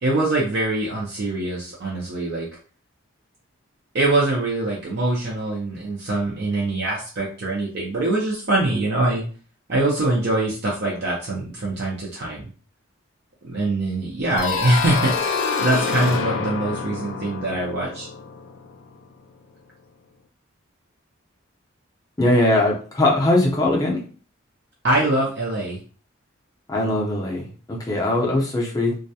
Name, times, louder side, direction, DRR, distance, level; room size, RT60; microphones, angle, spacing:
voice 1, 0.0-2.5 3.9-9.2 9.7-12.4 13.4-18.1 24.8-25.8, right 2 dB, 50° right, -3 dB, 0.5 m, -23 dB
sound 1, 14.4-19.0, left 5 dB, 70° left, 0.3 m, -27 dB
voice 2, 22.2-24.0 26.7-29.0, left 1 dB, 20° left, -2 dB, 0.5 m, -20 dB
2.3 x 2.1 x 2.7 m, 0.40 s
head